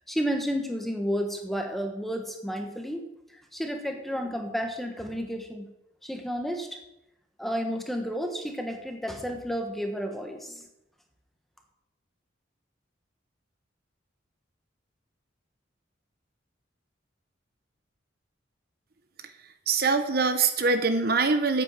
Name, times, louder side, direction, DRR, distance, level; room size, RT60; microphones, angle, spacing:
voice 1, 0.1-3.0 3.3-5.7 6.0-6.8 7.4-10.6, equal, ahead, 4 dB, 1.3 m, -31 dB
voice 2, 19.2-21.6, right 4 dB, 50° right, 9 dB, 0.9 m, -24 dB
9.2 x 8.4 x 7.5 m, 0.87 s
head